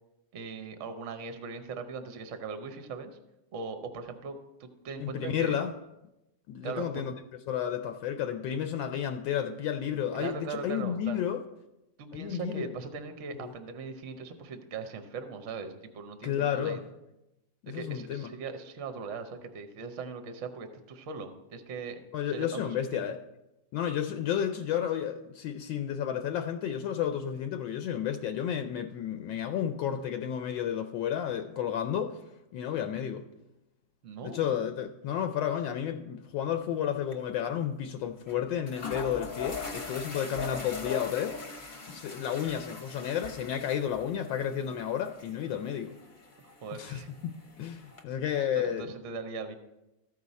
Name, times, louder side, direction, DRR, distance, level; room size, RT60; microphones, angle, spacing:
voice 1, 0.3-3.2 3.5-5.6 6.6-7.1 10.1-11.2 12.0-16.9 17.7-22.0 22.3-23.0 34.0-34.5 46.6-47.1 48.5-49.6, right 4 dB, 55° right, 8 dB, 0.9 m, -40 dB
voice 2, 5.0-5.7 6.5-7.1 7.5-11.4 12.1-12.7 13.4-13.5 16.2-16.8 17.6-18.3 22.1-23.2 23.7-32.2 32.5-33.2 34.2-41.4 41.9-45.9 46.8-48.9, left 9 dB, 80° left, 6 dB, 1.3 m, -32 dB
sound 1, 36.6-36.9 37.1-37.2 38.3-38.4 38.7-48.0, left 4 dB, 35° left, 0.8 m, -41 dB
14.0 x 4.8 x 4.1 m, 0.94 s
omnidirectional pair, 2.1 m